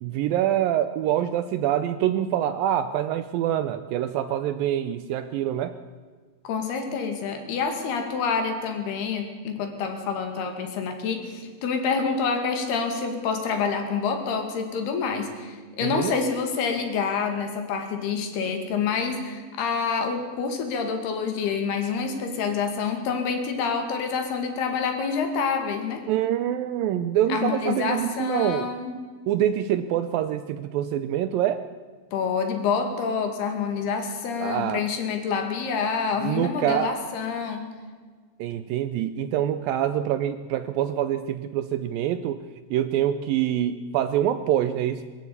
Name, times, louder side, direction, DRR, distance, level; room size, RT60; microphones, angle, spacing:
voice 1, 0.0-5.7 15.8-16.1 26.1-28.7 29.3-31.6 34.4-34.8 36.2-36.9 38.4-42.4 42.7-45.0, right 11 dB, 80° right, 11 dB, 2.1 m, -25 dB
voice 2, 6.4-26.1 27.3-28.9 32.1-37.6, left 5 dB, 75° left, 5 dB, 4.2 m, -27 dB
22.0 x 14.0 x 8.6 m, 1.5 s
omnidirectional pair, 4.7 m